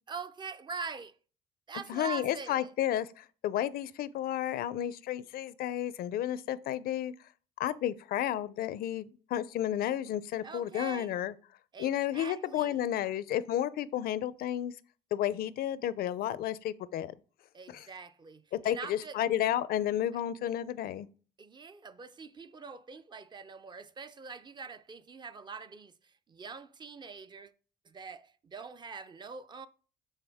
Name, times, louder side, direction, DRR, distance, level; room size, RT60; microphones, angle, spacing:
voice 1, 0.1-1.2 1.7-2.7 10.4-11.1 11.7-12.8 17.5-19.2 21.4-25.9 26.3-27.5 27.9-29.7, right 5 dB, 25° right, 0.5 m, -43 dB
voice 2, 1.9-7.1 7.6-11.3 11.8-14.7 15.1-17.1 17.7-17.9 18.6-21.1, left 11 dB, 65° left, 0.5 m, -32 dB
9.8 x 3.8 x 3.5 m
cardioid pair, 110°, 17 cm